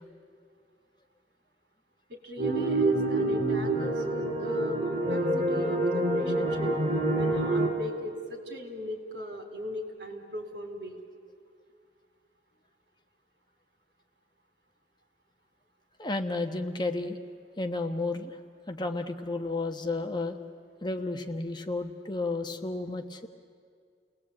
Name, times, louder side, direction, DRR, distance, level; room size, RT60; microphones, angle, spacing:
voice 1, 2.1-6.7 7.2-11.0, left 1 dB, 70° right, 4 dB, 4.1 m, -39 dB
sound 1, 2.4-7.7, right 2 dB, 40° right, 4.1 m, -27 dB
voice 2, 16.0-17.2 17.6-18.4 18.7-20.4 20.8-23.3, left 2 dB, 25° left, 5 dB, 1.2 m, -32 dB
30.0 x 19.0 x 8.7 m, 2.3 s
head